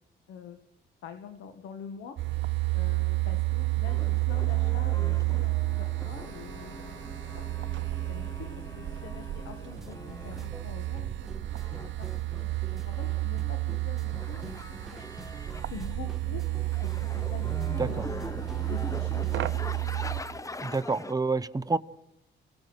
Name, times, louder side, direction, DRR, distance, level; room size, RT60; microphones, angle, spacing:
voice 1, 0.3-0.6 1.0-2.2 2.7-7.0 7.3-7.5 7.8-11.3 11.7-15.0 15.7-16.5 16.8-19.6, left 7 dB, 85° left, 7 dB, 1.7 m, -45 dB
sound 1, 2.2-20.2, right 19 dB, 70° right, 0.8 m, -31 dB
sound 2, 3.9-10.5 11.5-13.5 14.1-16.0 16.3-21.1, left 2 dB, 15° left, 0.9 m, -43 dB
sound 3, 9.8-19.4, right 1 dB, ahead, 1.4 m, -47 dB
voice 2, 20.6-21.8, right 3 dB, 20° right, 12 dB, 1.0 m, -28 dB
28.5 x 17.5 x 6.4 m, 0.81 s
cardioid pair, 90°, 20 cm